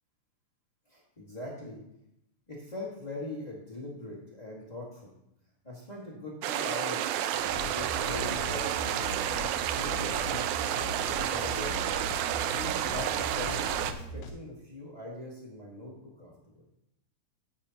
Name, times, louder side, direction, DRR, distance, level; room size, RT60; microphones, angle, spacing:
voice 1, 0.9-1.8 2.5-5.1 5.6-7.3 7.6-9.1 9.7-10.8 11.2-11.8 12.3-16.6, left 1 dB, 25° left, -5 dB, 0.8 m, -41 dB
sound 1, 6.4-13.9, right 11 dB, 90° right, 1.7 m, -30 dB
sound 2, 7.3-14.3, left 2 dB, 75° left, 1.7 m, -40 dB
12.0 x 8.4 x 2.9 m, 0.81 s
omnidirectional pair, 4.1 m